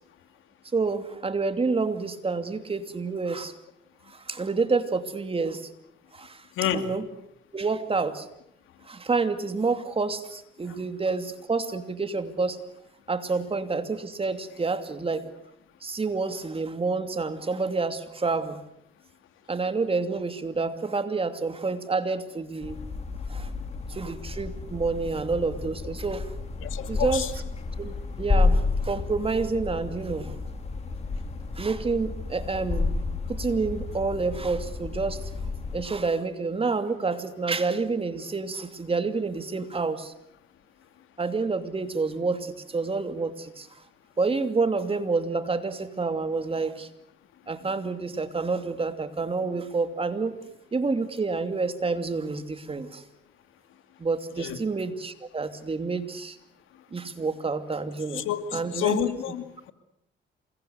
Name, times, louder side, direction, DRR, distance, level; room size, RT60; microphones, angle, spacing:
voice 1, 0.7-3.5 4.1-5.7 6.1-6.5 6.7-7.1 7.5-8.3 8.8-12.6 13.1-15.3 15.8-18.6 19.5-22.8 23.3-23.5 23.9-26.3 26.9-27.3 27.8-30.4 31.5-33.0 33.3-35.2 35.7-40.1 41.2-43.7 44.2-46.9 47.5-50.4 50.7-53.0 54.0-56.4 56.9-59.0, right 4 dB, 30° right, 9 dB, 2.7 m, -28 dB
sound 1, 22.6-35.8, left 3 dB, 30° left, 3.1 m, -30 dB
voice 2, 26.6-27.3 54.4-54.6 58.1-59.7, left 10 dB, 85° left, 9 dB, 2.5 m, -29 dB
28.0 x 22.0 x 8.1 m, 0.76 s
cardioid pair, 90°, 20 cm